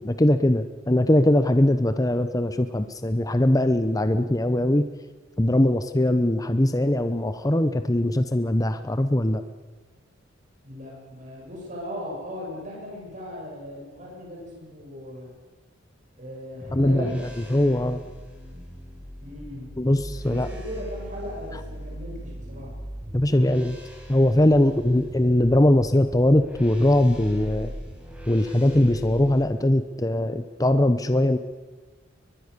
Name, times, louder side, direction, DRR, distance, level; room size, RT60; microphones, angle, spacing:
voice 1, 0.0-4.9 5.4-9.4 16.7-17.2 17.5-18.0 19.8-20.5 23.1-23.8 24.1-27.7 28.3-31.4, left 1 dB, 20° left, 10 dB, 0.9 m, -21 dB
voice 2, 10.6-15.3 16.2-17.1 19.2-19.7 20.3-20.4 20.6-22.7, equal, 40° right, -3 dB, 7.9 m, -37 dB
sound 1, 16.6-29.4, equal, 5° right, 5.9 m, -40 dB
22.5 x 21.5 x 6.8 m, 1.3 s
head